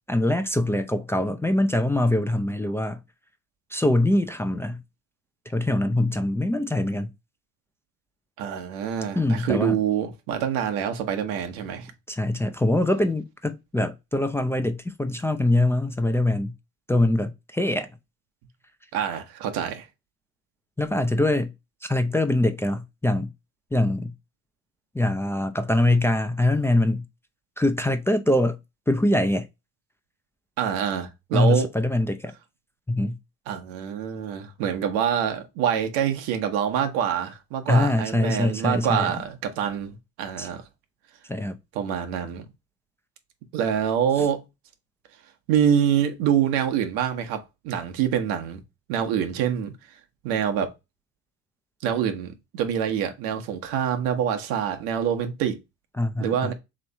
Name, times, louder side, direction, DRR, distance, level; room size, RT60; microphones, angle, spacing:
voice 1, 0.1-3.0 3.7-4.8 5.5-7.1 9.2-9.8 12.1-16.5 16.9-17.9 20.8-21.5 21.8-23.3 23.7-24.1 24.9-27.0 27.6-28.6 28.9-29.5 31.3-32.3 32.9-33.2 37.7-39.1 40.4-40.5 41.3-41.6 56.0-56.5, left 1 dB, 5° left, 0.5 m, -23 dB
voice 2, 8.4-11.9 18.9-19.9 30.6-31.7 33.5-40.6 41.7-42.5 43.5-44.4 45.5-48.6 48.9-49.7 50.2-50.7 51.8-55.6 56.2-56.5, right 9 dB, 75° right, 1.0 m, -26 dB
3.4 x 3.1 x 4.0 m
hypercardioid pair, 70°, 36 cm